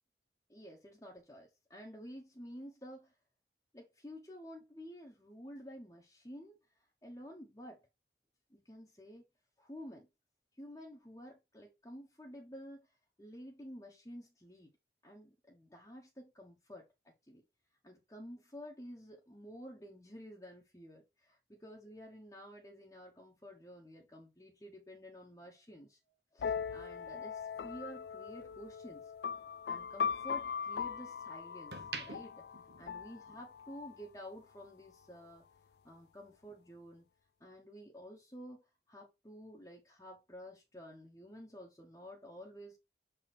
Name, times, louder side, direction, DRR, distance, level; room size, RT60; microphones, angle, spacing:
voice 1, 0.5-3.2 3.7-7.8 8.5-9.2 9.6-10.1 10.6-14.7 15.0-17.4 17.8-26.0 26.3-29.1 29.7-32.5 32.8-35.4 35.8-37.0 37.4-42.8, equal, 15° left, 1.1 m, -51 dB
sound 1, 26.4-34.0, left 6 dB, 65° left, 0.3 m, -40 dB
sound 2, 26.9-29.2 29.6-31.0 31.5-33.6 33.9-34.2, right 4 dB, 70° right, 1.0 m, -49 dB
6.6 x 4.3 x 3.4 m
head